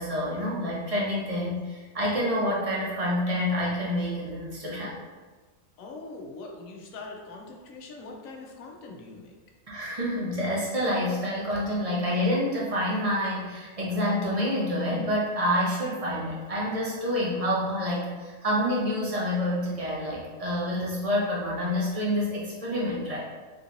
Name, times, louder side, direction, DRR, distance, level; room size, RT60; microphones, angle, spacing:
voice 1, 0.0-5.0 9.7-23.2, equal, 35° right, -5 dB, 0.6 m, -28 dB
voice 2, 5.8-9.3, left 3 dB, 85° left, 1 dB, 1.0 m, -42 dB
3.7 x 2.8 x 2.5 m, 1.3 s
omnidirectional pair, 1.4 m